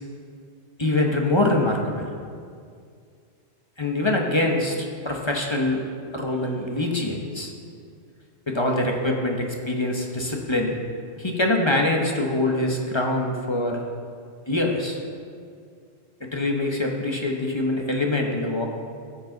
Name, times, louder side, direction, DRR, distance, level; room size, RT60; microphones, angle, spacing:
voice 1, 0.8-2.1 3.8-5.8 6.1-7.5 8.5-10.7 11.1-13.8 14.5-15.0 16.2-18.7, left 2 dB, 25° left, 1 dB, 1.0 m, -24 dB
14.0 x 8.5 x 4.0 m, 2.2 s
omnidirectional pair, 1.2 m